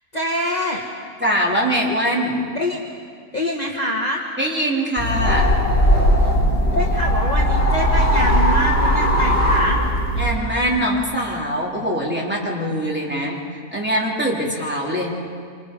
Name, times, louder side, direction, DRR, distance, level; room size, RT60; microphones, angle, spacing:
voice 1, 0.1-0.9 2.5-2.8 3.3-4.2 6.2-6.3 6.7-9.8, left 1 dB, 30° left, -1 dB, 1.7 m, -25 dB
voice 2, 1.2-2.4 4.4-5.6 10.2-15.1, equal, 5° right, -4 dB, 3.6 m, -23 dB
sound 1, 5.0-10.4, equal, 50° left, 4.9 m, -18 dB
27.5 x 27.0 x 5.4 m, 2.2 s
omnidirectional pair, 1.5 m